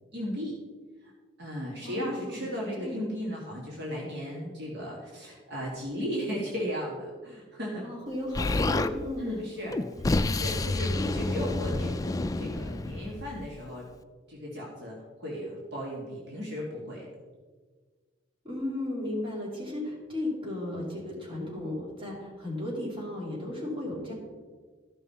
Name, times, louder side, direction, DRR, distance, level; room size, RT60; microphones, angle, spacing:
voice 1, 0.1-0.5 1.0-1.1 1.4-7.9 9.2-9.8 10.3-13.9 14.3-17.1, equal, 60° right, -4 dB, 1.9 m, -36 dB
voice 2, 1.8-2.5 2.8-3.0 7.8-9.4 10.9-11.0 11.7-11.8 18.4-24.1, left 1 dB, 30° right, -4 dB, 3.0 m, -35 dB
Explosion, 8.3-8.9 9.7-13.6, left 2 dB, 20° left, 0.3 m, -29 dB
14.0 x 5.6 x 4.1 m, 1.5 s
head